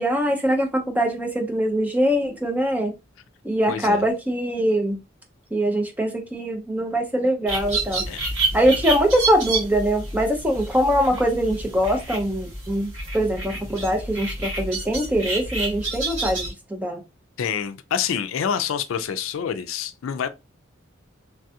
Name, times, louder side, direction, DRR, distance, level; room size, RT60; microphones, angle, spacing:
voice 1, 0.0-2.9 3.4-5.0 5.5-8.0 8.5-17.0, equal, 10° right, 0.5 m, -23 dB
voice 2, 3.7-4.1 8.1-8.3 17.4-20.3, left 7 dB, 75° left, 0.4 m, -27 dB
sound 1, 7.5-16.5, right 3 dB, 70° right, 2.0 m, -29 dB
3.2 x 2.3 x 2.7 m
head